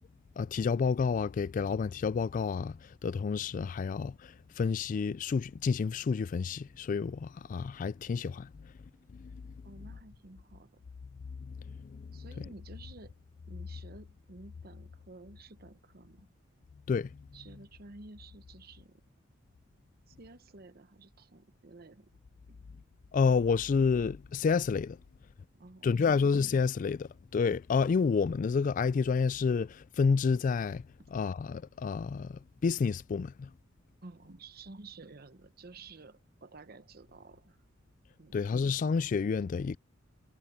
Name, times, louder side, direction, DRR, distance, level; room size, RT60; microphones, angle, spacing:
voice 1, 0.4-8.7 9.1-9.5 11.4-12.2 16.9-17.3 23.1-25.0 25.8-30.9 31.1-33.5 38.3-39.8, left 5 dB, 40° left, 0.3 m, -30 dB
voice 2, 9.6-10.8 12.1-16.3 17.3-19.0 20.1-22.1 22.5-22.6 25.5-26.2 34.0-37.6 38.2-38.4, right 3 dB, 50° right, 1.0 m, -52 dB
head